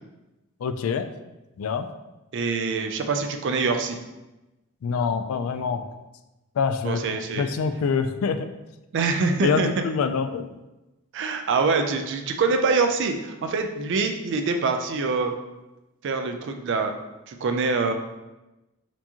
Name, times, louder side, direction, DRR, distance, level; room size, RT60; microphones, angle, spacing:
voice 1, 0.6-1.1 1.6-1.9 4.8-5.9 6.6-7.0 7.4-8.5 9.4-10.5, left 5 dB, 70° left, 9 dB, 0.3 m, -25 dB
voice 2, 2.3-4.0 6.8-7.4 8.9-9.7 11.1-15.3 16.0-16.9 17.3-17.9, right 4 dB, 55° right, 5 dB, 0.4 m, -24 dB
4.4 x 2.9 x 2.8 m, 1.0 s
head